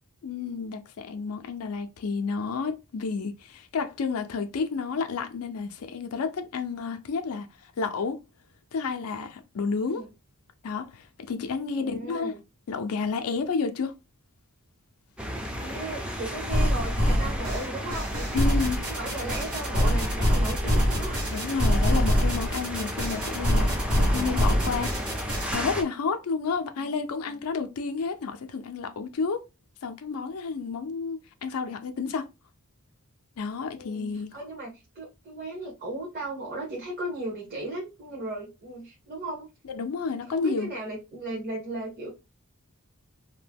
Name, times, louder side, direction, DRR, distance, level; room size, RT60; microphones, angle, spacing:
voice 1, 0.2-7.5 7.8-8.2 8.7-10.0 10.6-12.3 12.7-13.9 18.3-18.8 21.2-23.7 24.0-29.4 29.8-32.3 33.4-34.3 39.7-40.7, left 5 dB, 80° left, 0.4 m, -31 dB
voice 2, 11.8-12.4 15.5-18.4 18.8-21.2 26.8-27.1 33.7-39.5 40.3-42.1, right 2 dB, 45° right, 0.9 m, -36 dB
sound 1, 15.2-25.8, equal, 5° right, 0.4 m, -34 dB
sound 2, 16.5-25.6, equal, 85° right, 1.2 m, -25 dB
2.7 x 2.2 x 3.4 m
head